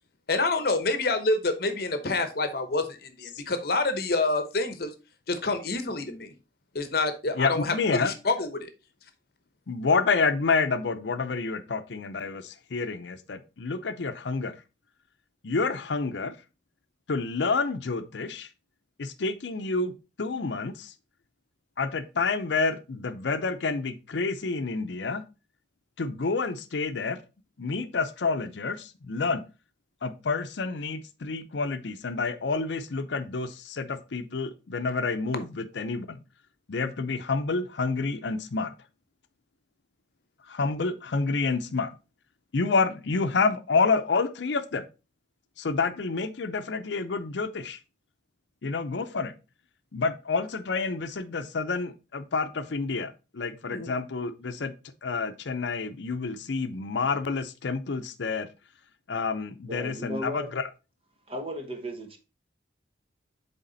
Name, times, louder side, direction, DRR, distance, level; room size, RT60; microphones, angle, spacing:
voice 1, 0.3-4.9 5.3-6.3 6.7-8.7 53.7-53.9, left 3 dB, 55° left, 0.9 m, -27 dB
voice 2, 7.3-8.1 9.7-14.6 15.4-16.3 17.1-18.5 19.0-19.9 20.2-20.9 21.8-25.2 26.0-27.2 27.6-29.4 30.0-36.2 36.7-38.7 40.5-41.9 42.5-44.8 45.6-47.8 48.6-49.3 49.9-54.7 55.0-58.5 59.1-60.6, left 4 dB, 75° left, 0.6 m, -28 dB
voice 3, 59.7-60.5 61.3-62.2, equal, 30° right, 1.1 m, -35 dB
8.2 x 3.5 x 3.9 m
head